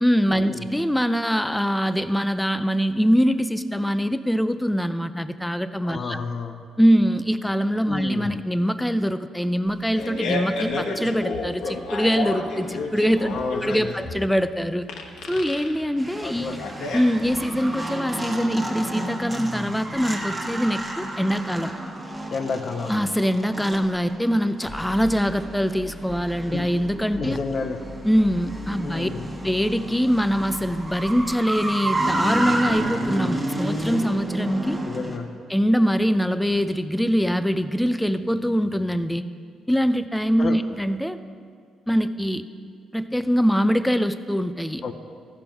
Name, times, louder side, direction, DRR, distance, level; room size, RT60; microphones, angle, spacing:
voice 1, 0.0-6.2 6.8-14.9 15.3-16.6 16.9-21.7 22.9-27.4 28.0-29.1 29.4-34.8 35.5-39.2 39.7-41.2 41.9-42.4 42.9-44.8, equal, 5° left, 12 dB, 0.4 m, -23 dB
voice 2, 5.8-6.6 7.9-8.3 13.3-13.9 16.2-16.6 22.3-23.1 26.5-26.7 27.2-27.8 28.8-29.3 34.8-35.3 40.4-40.6 44.8-44.9, left 4 dB, 50° left, 5 dB, 0.7 m, -30 dB
Fart, 9.7-17.6, left 2 dB, 80° left, 1.1 m, -31 dB
sound 1, 16.0-35.2, right 1 dB, 20° right, 1.3 m, -31 dB
sound 2, 24.3-38.2, left 1 dB, 30° left, 1.2 m, -44 dB
14.0 x 5.2 x 5.9 m, 2.1 s
cardioid pair, 90°, 0 cm